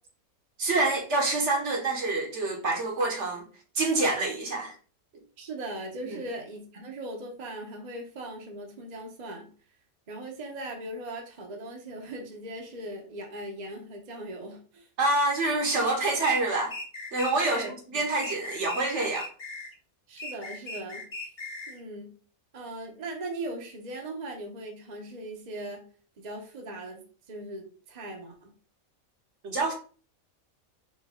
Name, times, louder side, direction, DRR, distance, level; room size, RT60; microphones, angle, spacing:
voice 1, 0.6-3.4 3.7-4.7 6.1-6.2 15.0-16.7 17.1-17.6 17.9-19.3 29.4-29.7, right 2 dB, 60° right, 1.3 m, -26 dB
voice 2, 5.4-9.5 10.1-14.9 17.4-18.0 20.1-21.3 21.7-22.1 22.5-25.8 26.2-28.5, right 1 dB, 35° right, 0.8 m, -39 dB
sound 1, 16.2-17.7 18.2-19.7 20.2-21.8, left 2 dB, 35° left, 0.7 m, -38 dB
4.3 x 2.9 x 3.5 m
omnidirectional pair, 1.5 m